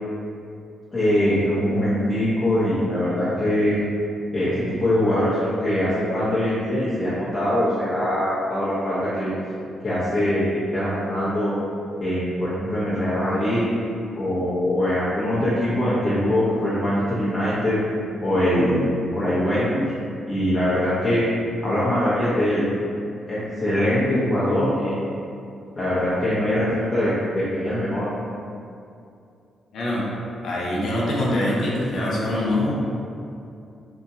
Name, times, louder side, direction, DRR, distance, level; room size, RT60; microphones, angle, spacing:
voice 1, 0.9-3.8 4.3-9.3 9.8-11.5 12.0-13.7 14.1-17.8 18.2-18.9 19.1-19.9 20.3-21.3 21.6-22.6 23.3-25.0 25.8-28.1, left 1 dB, 40° left, -12 dB, 0.8 m, -22 dB
voice 2, 29.7-30.1 30.4-32.7, left 1 dB, 70° left, -5 dB, 0.6 m, -24 dB
2.9 x 2.5 x 2.6 m, 2.5 s
hypercardioid pair, 45°, 0 cm